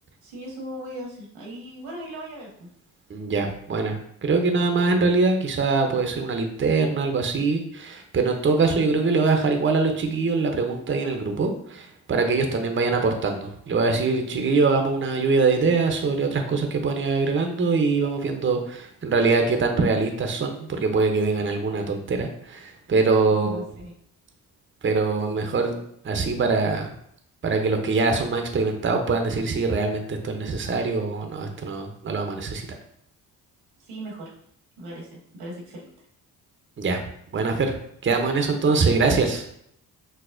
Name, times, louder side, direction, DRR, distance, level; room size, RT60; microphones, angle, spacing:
voice 1, 0.2-2.7 23.3-23.9 33.8-34.3 34.8-35.8, right 1 dB, 85° right, -2 dB, 1.4 m, -38 dB
voice 2, 3.1-23.6 24.8-25.8 26.0-26.9 27.4-32.6 36.8-37.0 37.3-37.7 38.0-39.4, right 4 dB, 30° right, 4 dB, 0.7 m, -23 dB
6.1 x 2.1 x 2.5 m, 0.71 s
supercardioid pair, 55°, 38 cm